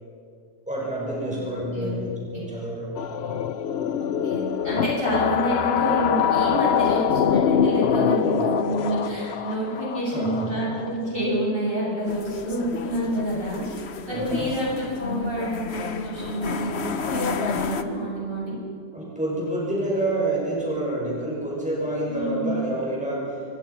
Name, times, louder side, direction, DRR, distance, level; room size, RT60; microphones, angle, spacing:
voice 1, 0.7-3.0 8.2-8.5 10.1-10.7 14.1-14.6 18.9-23.3, right 1 dB, 5° right, -5 dB, 6.5 m, -28 dB
sound 1, 2.9-11.2, left 8 dB, 70° left, 0.6 m, -24 dB
voice 2, 4.0-13.7 14.1-18.6 22.1-22.7, right 1 dB, 30° right, -5 dB, 6.9 m, -28 dB
sound 2, 12.1-17.8, left 5 dB, 45° left, 1.0 m, -31 dB
26.5 x 23.5 x 5.8 m, 2.4 s
omnidirectional pair, 1.9 m